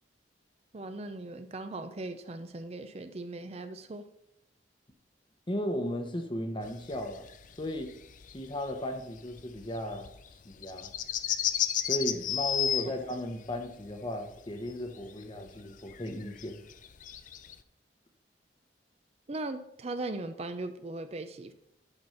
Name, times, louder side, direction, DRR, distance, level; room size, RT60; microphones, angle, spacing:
voice 1, 0.7-4.1 19.3-21.5, right 2 dB, 35° right, 0.5 m, -38 dB
voice 2, 5.5-7.3 7.6-7.9 8.3-10.1 10.4-10.9 11.9-16.6, equal, 25° left, 0.9 m, -35 dB
sound 1, 6.6-13.2 13.5-14.0 14.3-15.6 15.9-17.6, left 10 dB, 45° left, 0.5 m, -33 dB
10.5 x 4.3 x 5.6 m
head